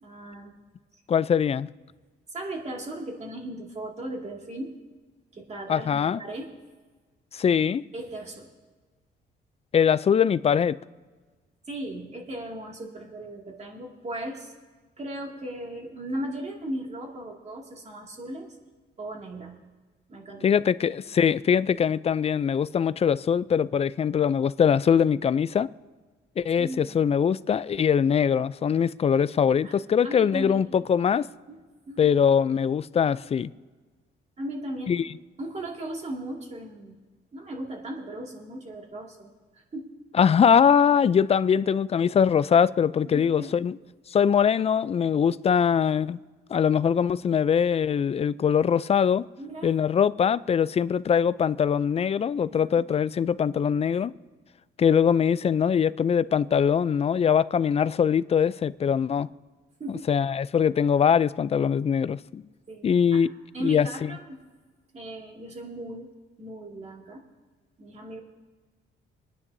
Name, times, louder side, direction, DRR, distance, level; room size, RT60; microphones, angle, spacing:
voice 1, 0.0-0.5 0.9-1.0 2.3-4.7 5.3-6.5 7.9-8.5 11.7-14.5 15.0-18.6 19.0-19.7 20.1-20.5 26.6-27.0 29.6-29.8 30.0-30.7 31.5-31.6 31.9-32.1 34.4-34.9 35.4-37.0 37.3-39.9 43.0-43.5 49.4-49.7 52.5-52.8 59.8-60.3 62.7-62.9 63.1-63.2 63.5-64.4 64.9-66.1 66.4-67.2 67.8-68.2, right 1 dB, 35° right, 2.3 m, -37 dB
voice 2, 1.1-1.7 5.7-6.2 7.3-7.8 9.7-10.8 20.4-25.7 26.4-31.3 32.0-33.5 34.9-35.0 40.2-43.8 44.1-46.2 46.5-49.2 49.6-54.1 54.8-59.3 60.1-62.4 62.8-63.3 63.6-63.9, left 7 dB, 30° left, 0.4 m, -22 dB
27.0 x 9.8 x 2.7 m
cardioid pair, 90°, 20 cm